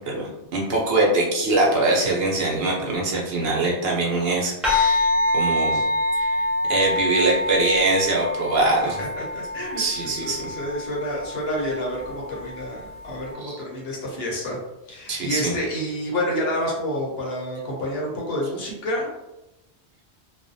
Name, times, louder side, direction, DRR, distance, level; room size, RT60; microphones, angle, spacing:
voice 1, 0.1-5.8 6.2-6.3 6.7-9.0 9.8-10.5 13.4-13.6 15.1-15.5, right 2 dB, 65° right, -3 dB, 0.9 m, -23 dB
sound 1, 4.6-13.3, left 2 dB, ahead, 0.8 m, -26 dB
voice 2, 8.8-14.6 14.9-19.1, equal, 70° left, -3 dB, 1.0 m, -29 dB
2.4 x 2.2 x 2.6 m, 0.94 s
omnidirectional pair, 1.1 m